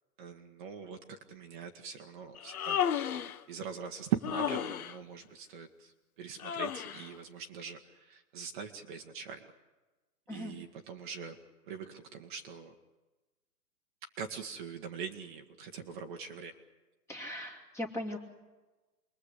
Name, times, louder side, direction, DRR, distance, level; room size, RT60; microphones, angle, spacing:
voice 1, 0.2-2.8 3.5-5.9 6.2-9.5 10.3-11.4 11.7-12.7 14.2-16.5, right 8 dB, 30° right, 3 dB, 1.6 m, -41 dB
Human voice, 2.4-3.4 4.2-5.0 6.4-7.1, left 9 dB, 60° left, 1.3 m, -33 dB
voice 2, 10.3-10.6 17.1-18.2, left 1 dB, 5° left, 1 dB, 2.5 m, -39 dB
29.0 x 22.5 x 8.3 m, 1.2 s
hypercardioid pair, 160°, 49 cm